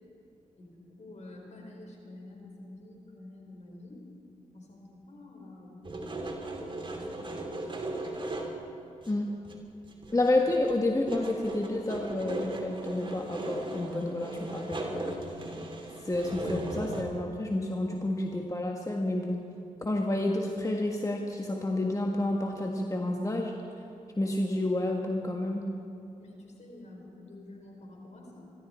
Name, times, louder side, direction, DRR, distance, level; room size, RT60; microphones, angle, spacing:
voice 1, 0.5-4.0 4.5-6.2 6.8-7.9 10.0-10.2 26.2-28.5, left 2 dB, 55° left, 0 dB, 4.6 m, -49 dB
sound 1, 5.8-8.7 9.0-9.1 9.4-10.3 10.5-17.0, right 2 dB, 35° right, 2.9 m, -37 dB
voice 2, 10.1-15.2 16.0-19.4 19.8-23.5 24.2-25.6, left 1 dB, 25° left, 1 dB, 1.6 m, -30 dB
25.5 x 12.5 x 4.4 m, 2.9 s
cardioid pair, 55°, 14 cm